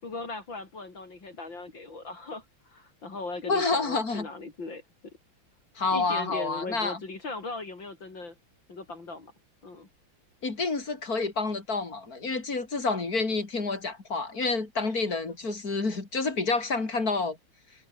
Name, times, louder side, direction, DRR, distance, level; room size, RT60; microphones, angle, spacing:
voice 1, 0.0-4.8 5.9-8.3 8.7-9.3 9.6-9.9 14.8-15.0, left 3 dB, 60° left, 5.1 m, -39 dB
voice 2, 3.4-4.3 5.8-7.0 10.4-17.4, left 3 dB, 40° left, 3.9 m, -28 dB
omnidirectional pair, 2.3 m